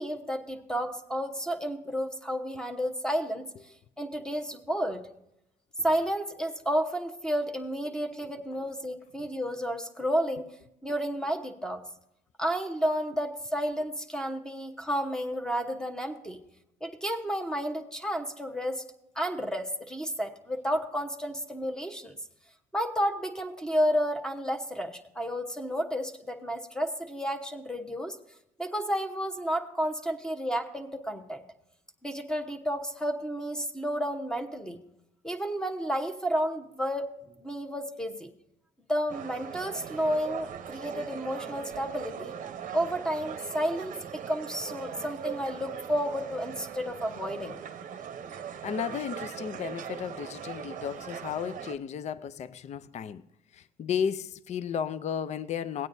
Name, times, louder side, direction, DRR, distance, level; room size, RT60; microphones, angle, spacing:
voice 1, 0.0-3.5 4.0-5.1 5.8-10.5 10.8-11.8 12.4-16.4 16.8-18.8 19.2-22.2 22.7-28.2 28.6-31.4 32.0-34.8 35.2-38.3 38.9-42.3 42.7-47.6, equal, 5° left, 1.0 m, -31 dB
sound 1, 39.1-51.8, right 8 dB, 50° right, 0.8 m, -40 dB
voice 2, 48.6-53.2 53.5-55.9, left 8 dB, 40° left, 0.5 m, -34 dB
17.5 x 9.1 x 2.7 m
cardioid pair, 110°, 17 cm